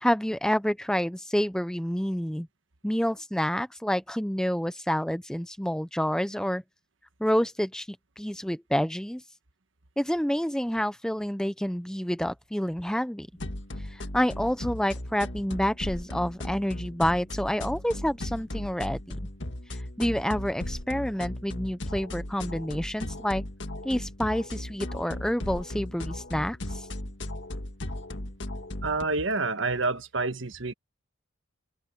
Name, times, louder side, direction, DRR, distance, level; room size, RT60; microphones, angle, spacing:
voice 1, 0.0-2.5 2.8-6.6 7.2-9.2 10.0-13.3 13.9-19.2 19.7-23.4 23.8-26.9, equal, 5° left, 0.6 m, -28 dB
sound 1, 13.4-29.0, left 1 dB, 65° left, 1.9 m, -36 dB
voice 2, 28.8-30.7, right 3 dB, 75° right, 1.4 m, -28 dB
open air
head